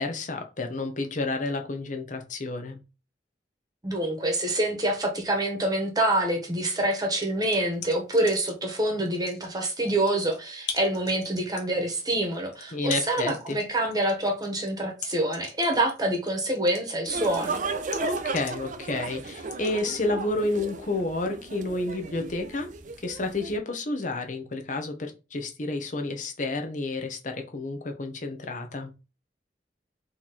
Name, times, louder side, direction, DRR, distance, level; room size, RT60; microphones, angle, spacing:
voice 1, 0.0-2.8 12.7-13.6 18.0-22.7 23.0-28.9, left 2 dB, 45° left, 0.8 m, -30 dB
voice 2, 3.8-17.6, right 1 dB, 20° right, 1.2 m, -26 dB
sound 1, 6.8-8.7 9.0-19.8, left 6 dB, 75° left, 1.0 m, -41 dB
sound 2, 17.1-23.6, right 3 dB, 45° right, 0.5 m, -35 dB
3.9 x 3.0 x 4.1 m
head